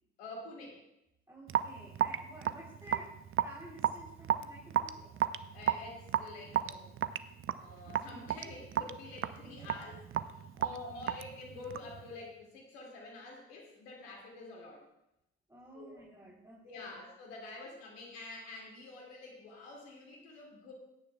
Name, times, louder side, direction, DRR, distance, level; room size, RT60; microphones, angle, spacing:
voice 1, 0.2-0.8 5.5-6.9 7.5-14.8 15.7-16.0 16.6-20.7, left 2 dB, 80° left, 0 dB, 2.4 m, -48 dB
voice 2, 1.3-3.1 3.4-5.2 10.5-11.1 15.5-17.0, right 1 dB, 10° right, -5 dB, 3.6 m, -52 dB
Raindrop / Drip, 1.5-12.0, right 10 dB, 45° right, 0.6 m, -34 dB
17.0 x 9.9 x 2.3 m, 0.84 s
hypercardioid pair, 45°, 31 cm